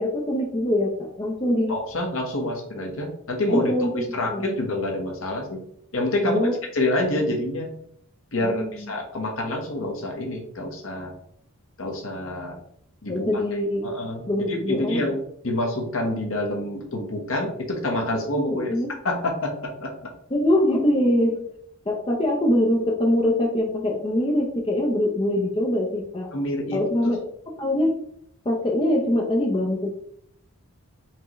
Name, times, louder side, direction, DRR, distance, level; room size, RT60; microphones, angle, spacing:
voice 1, 0.0-1.8 3.5-4.0 4.3-4.6 6.2-6.5 8.4-8.9 13.1-13.9 14.3-15.0 15.5-15.6 18.5-18.9 20.3-21.5 21.9-26.3 26.7-27.2 27.6-28.0 28.5-29.9, left 1 dB, 25° left, -2 dB, 0.6 m, -23 dB
voice 2, 1.7-5.6 5.9-6.5 6.7-7.7 8.3-11.1 11.8-12.6 13.0-13.4 13.8-15.2 15.4-18.7 19.0-19.9 26.3-27.1, left 1 dB, 65° left, 1 dB, 1.1 m, -27 dB
4.6 x 3.6 x 3.0 m, 0.69 s
head